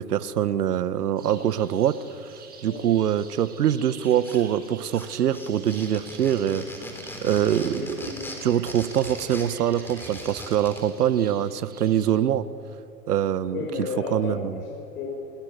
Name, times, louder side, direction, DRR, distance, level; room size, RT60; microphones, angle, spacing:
voice 1, 0.0-2.0 2.6-6.7 7.2-8.1 8.4-12.5 13.1-13.7 14.1-14.6, right 10 dB, 65° right, 15 dB, 1.3 m, -24 dB
sound 1, 1.2-12.1, right 5 dB, 20° right, 6.0 m, -48 dB
sound 2, 4.0-4.7 4.9-10.9, left 1 dB, 5° left, 3.9 m, -40 dB
voice 2, 7.8-8.3 13.5-15.1, left 4 dB, 65° left, 0 dB, 5.8 m, -33 dB
28.5 x 22.5 x 6.7 m, 2.5 s
hypercardioid pair, 130°, 49 cm